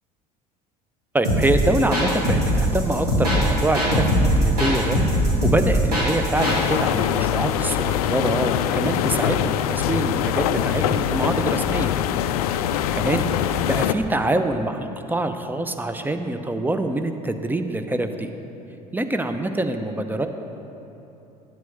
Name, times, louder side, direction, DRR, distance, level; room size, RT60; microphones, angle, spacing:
voice 1, 1.1-5.0 5.4-11.9 12.9-18.3 18.9-20.3, right 2 dB, 10° right, 7 dB, 0.7 m, -25 dB
sound 1, 1.2-6.6, equal, 90° right, 2.4 m, -20 dB
sound 2, 6.3-13.9, left 10 dB, 75° left, 0.4 m, -23 dB
9.3 x 8.6 x 4.7 m, 2.9 s
hypercardioid pair, 65°, 19 cm